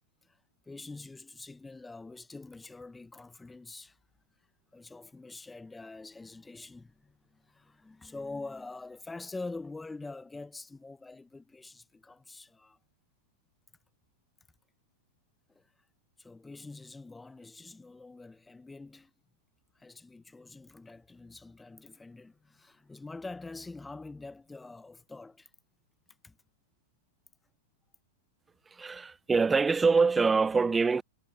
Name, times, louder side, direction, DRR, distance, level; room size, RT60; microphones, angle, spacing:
voice 1, 0.6-4.0 4.7-12.8 15.5-15.7 16.2-19.1 19.7-25.5 26.2-26.4, left 3 dB, 10° left, 0.9 m, -45 dB
voice 2, 28.7-31.0, right 4 dB, 15° right, 0.3 m, -24 dB
hypercardioid pair, 110°, 0 cm